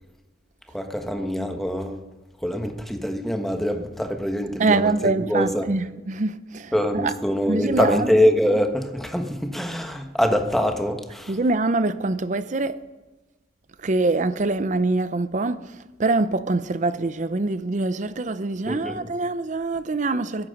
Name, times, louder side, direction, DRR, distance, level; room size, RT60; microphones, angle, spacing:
voice 1, 0.7-2.0 2.4-5.7 6.7-11.3 18.7-19.1, equal, ahead, 1.3 m, -24 dB
voice 2, 4.6-7.1 7.5-8.1 11.3-12.8 13.8-20.5, right 3 dB, 45° right, 0.6 m, -24 dB
22.0 x 11.0 x 5.2 m
head